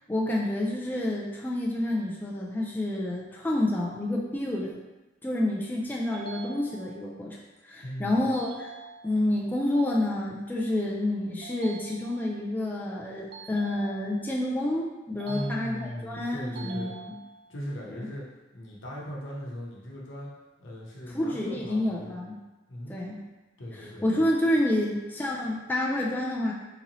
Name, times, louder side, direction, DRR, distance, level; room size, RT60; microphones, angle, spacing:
voice 1, 0.1-4.7 5.2-7.4 7.6-8.7 9.0-16.9 17.9-18.1 21.1-22.4 22.9-23.2 23.7-26.5, left 1 dB, 10° left, -3 dB, 0.3 m, -28 dB
sound 1, 6.1-7.2 8.3-9.3 11.4-12.4 13.3-14.4 15.2-16.1 16.6-17.6, right 4 dB, 55° right, 0.4 m, -45 dB
voice 2, 7.8-8.2 15.2-16.9 17.5-18.3 18.5-20.3 20.6-22.2 22.7-23.0 23.6-24.0, equal, 80° left, -4 dB, 0.9 m, -38 dB
3.9 x 2.7 x 2.9 m, 1.1 s
head